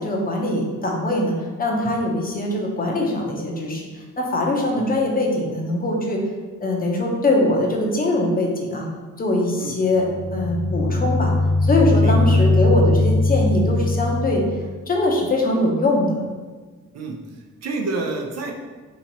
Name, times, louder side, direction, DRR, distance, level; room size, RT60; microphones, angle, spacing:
voice 1, 0.0-1.3 1.6-3.8 4.2-6.2 6.6-8.9 9.2-11.3 11.6-14.4 14.9-16.2, left 1 dB, 30° left, -1 dB, 0.8 m, -22 dB
sound 1, 10.0-14.7, left 2 dB, 65° left, 0.6 m, -20 dB
voice 2, 12.0-12.5 16.9-18.5, right 3 dB, 60° right, 2 dB, 0.7 m, -29 dB
3.0 x 2.8 x 4.1 m, 1.4 s
cardioid pair, 90°, 30 cm